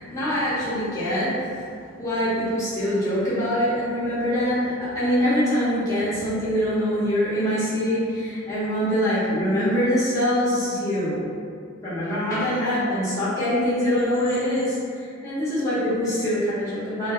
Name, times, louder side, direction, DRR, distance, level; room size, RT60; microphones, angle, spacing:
voice 1, 0.0-1.7 2.0-11.3 11.8-17.1, equal, 15° left, -12 dB, 0.9 m, -24 dB
3.0 x 2.1 x 2.9 m, 2.3 s
head